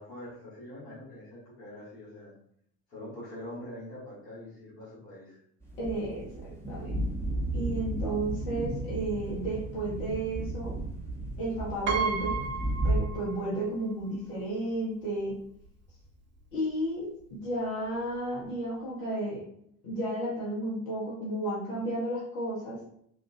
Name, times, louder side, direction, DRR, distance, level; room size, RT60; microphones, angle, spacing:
voice 1, 0.0-2.3 2.9-5.4, left 1 dB, 90° left, -9 dB, 1.4 m, -44 dB
sound 1, 5.6-12.9, right 1 dB, 5° left, 1.0 m, -34 dB
voice 2, 5.8-7.0 7.5-10.7 11.4-12.4 12.8-15.3 16.5-19.4 19.8-22.8, right 1 dB, 65° left, -7 dB, 1.1 m, -33 dB
Piano, 11.9-13.7 14.0-14.1 15.3-15.4 15.7-15.9, right 5 dB, 25° right, 0.4 m, -33 dB
2.8 x 2.4 x 2.5 m, 0.70 s
figure-of-eight pair, 60°, 45 cm